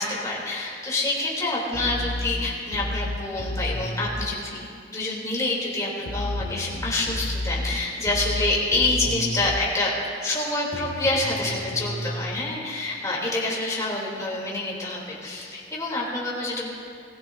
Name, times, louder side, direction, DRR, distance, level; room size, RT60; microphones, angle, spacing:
voice 1, 0.0-9.9 10.2-16.7, left 2 dB, 20° left, -5 dB, 3.3 m, -27 dB
sound 1, 1.7-4.3 6.1-9.7 10.7-12.4, left 1 dB, 75° left, 2.1 m, -31 dB
21.5 x 15.5 x 2.7 m, 2.4 s
head